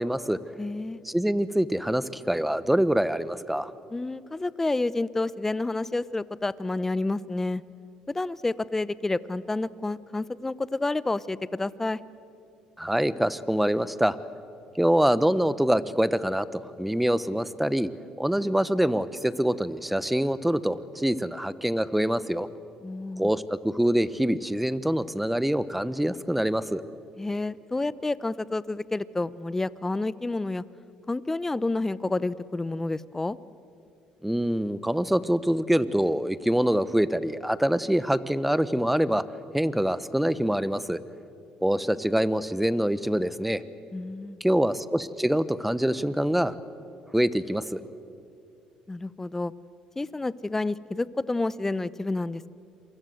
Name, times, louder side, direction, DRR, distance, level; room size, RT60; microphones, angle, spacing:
voice 1, 0.0-0.4 1.0-3.7 12.8-14.2 14.8-17.9 18.2-22.5 23.2-26.8 34.2-39.2 39.5-41.0 41.6-43.6 44.4-46.5 47.1-47.8, right 1 dB, 5° right, 15 dB, 1.1 m, -25 dB
voice 2, 0.6-1.0 3.9-7.6 8.1-12.0 22.8-23.3 27.2-30.6 31.1-33.4 43.9-44.4 48.9-49.5 50.0-52.5, left 2 dB, 15° left, 18 dB, 0.8 m, -29 dB
28.0 x 23.5 x 8.0 m, 2.6 s
supercardioid pair, 85°, 2 cm